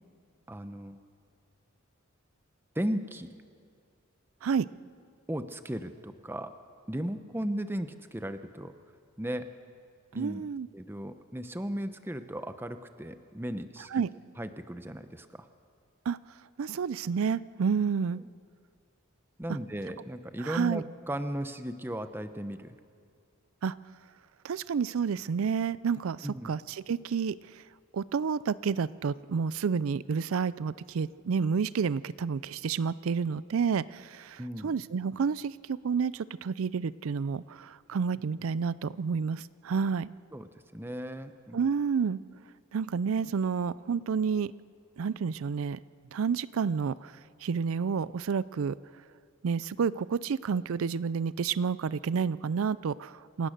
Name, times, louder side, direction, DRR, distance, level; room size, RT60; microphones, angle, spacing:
voice 1, 0.5-1.0 2.7-3.3 5.3-6.5 6.9-8.7 9.2-9.5 10.1-10.4 10.7-14.0 14.4-15.5 19.4-22.8 26.2-26.5 34.4-34.7 40.3-41.7, right 1 dB, 10° right, 9 dB, 0.8 m, -36 dB
voice 2, 10.1-10.7 13.9-14.1 16.1-16.2 16.6-18.2 20.4-20.8 23.6-23.8 24.4-27.6 27.9-40.1 41.5-42.2 42.7-44.5 45.0-45.8 46.1-48.8 49.4-53.5, right 6 dB, 85° right, 18 dB, 0.4 m, -30 dB
27.5 x 16.5 x 6.6 m, 2.2 s
head